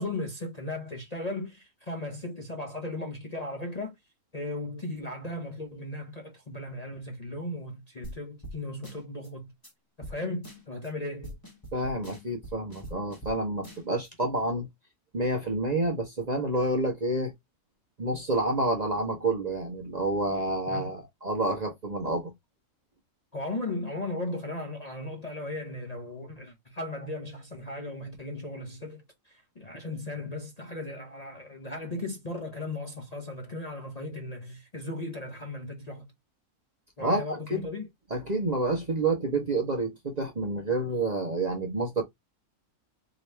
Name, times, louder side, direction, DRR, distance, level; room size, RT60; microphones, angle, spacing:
voice 1, 0.0-3.9 4.3-9.5 10.0-11.4 20.7-20.9 23.3-36.1 37.0-37.9, left 2 dB, 35° left, 0.8 m, -36 dB
sound 1, 8.0-8.2 8.4-8.6 8.8-9.3 9.6-9.7 10.0-10.2 10.4-10.9 11.2-13.4 13.6-14.1, equal, 15° left, 1.1 m, -43 dB
voice 2, 11.7-14.7 15.1-17.3 18.0-22.3 37.0-37.2 37.5-37.7 38.1-42.0, right 2 dB, 35° right, 0.8 m, -28 dB
3.9 x 2.9 x 3.2 m
omnidirectional pair, 1.6 m